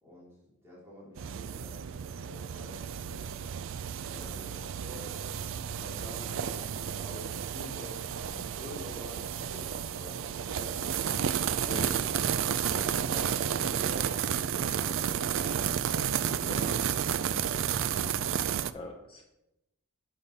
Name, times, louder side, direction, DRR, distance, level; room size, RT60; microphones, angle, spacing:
voice 1, 0.0-3.4 3.8-5.2 5.7-10.9 12.7-15.4, equal, 10° right, -7 dB, 2.5 m, -48 dB
sound 1, 1.2-18.7, right 8 dB, 60° right, 0.4 m, -32 dB
voice 2, 11.7-12.0 12.7-12.9 16.4-16.7 18.2-18.4 18.7-19.2, left 2 dB, 25° left, 1 dB, 0.6 m, -43 dB
8.1 x 5.8 x 5.3 m, 0.93 s
head